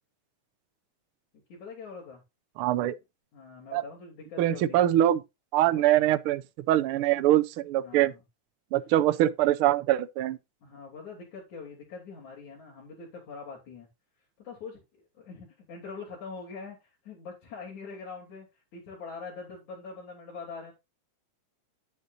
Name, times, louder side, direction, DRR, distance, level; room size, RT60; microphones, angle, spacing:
voice 1, 1.5-2.2 2.8-2.9 3.3-4.8 5.6-6.0 7.8-8.2 10.6-13.9 14.4-20.7, left 4 dB, 75° left, 4.7 m, -43 dB
voice 2, 2.6-2.9 3.7-3.8 4.4-5.2 5.5-6.4 6.7-8.1 8.7-10.4, right 13 dB, 85° right, 1.2 m, -23 dB
10.5 x 8.0 x 2.6 m
omnidirectional pair, 3.3 m